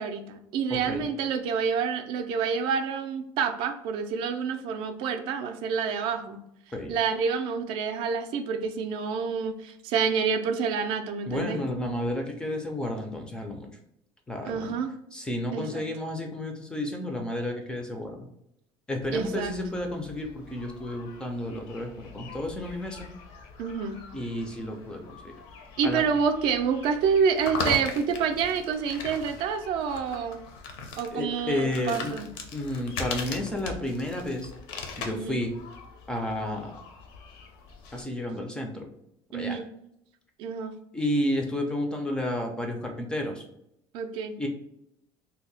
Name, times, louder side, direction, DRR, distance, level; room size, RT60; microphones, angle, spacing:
voice 1, 0.0-6.4 6.9-11.6 14.5-14.9 15.5-15.9 19.1-19.5 23.6-24.0 25.8-30.4 31.0-32.3 35.1-35.4 39.3-39.7 40.4-40.7 43.9-44.4, right 6 dB, 60° right, 7 dB, 0.4 m, -28 dB
voice 2, 0.7-1.0 6.7-6.9 11.3-13.7 14.3-14.7 15.1-18.3 18.9-23.1 24.1-25.3 25.8-26.0 31.1-32.2 32.5-34.5 35.0-35.6 36.1-36.8 37.9-38.9 39.3-39.6 40.9-43.4 44.4-44.5, left 1 dB, 10° left, 2 dB, 0.3 m, -31 dB
sound 1, 19.0-38.0, left 4 dB, 65° left, 0.6 m, -40 dB
2.7 x 2.1 x 3.9 m, 0.77 s
cardioid pair, 170°, 10 cm